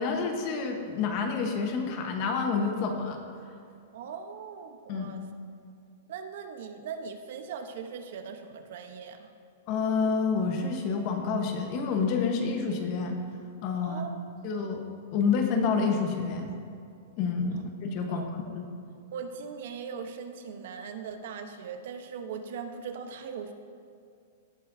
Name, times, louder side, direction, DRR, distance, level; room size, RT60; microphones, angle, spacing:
voice 1, 0.0-3.2 4.9-5.1 9.7-13.2 13.6-14.0 14.4-14.8 15.1-16.5 17.2-17.6 17.9-18.3 18.5-18.7, left 5 dB, 30° left, 4 dB, 1.1 m, -28 dB
voice 2, 3.9-5.2 6.1-9.3 13.8-14.2 17.5-17.6 18.1-18.3 19.1-23.5, right 6 dB, 55° right, 7 dB, 0.9 m, -40 dB
17.5 x 8.3 x 2.7 m, 2.4 s
supercardioid pair, 175°, 0 cm